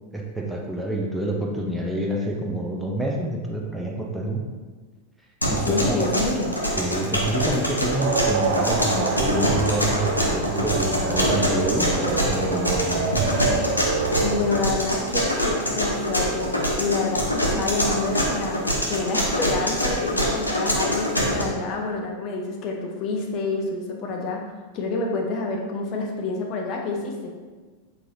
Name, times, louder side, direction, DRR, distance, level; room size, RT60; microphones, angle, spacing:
voice 1, 0.1-4.4 5.5-6.1 6.7-13.1, right 1 dB, 5° right, -1 dB, 0.6 m, -27 dB
sound 1, 5.4-21.4, equal, 85° left, 0.8 m, -24 dB
voice 2, 5.6-6.6 13.9-18.6 18.9-24.4 24.7-27.3, left 3 dB, 40° left, 1 dB, 0.6 m, -28 dB
sound 2, 8.0-14.4, right 5 dB, 55° right, 0.5 m, -27 dB
sound 3, 9.3-14.6, equal, 80° right, 1.0 m, -35 dB
6.1 x 2.9 x 2.7 m, 1.4 s
figure-of-eight pair, 90°, 0 cm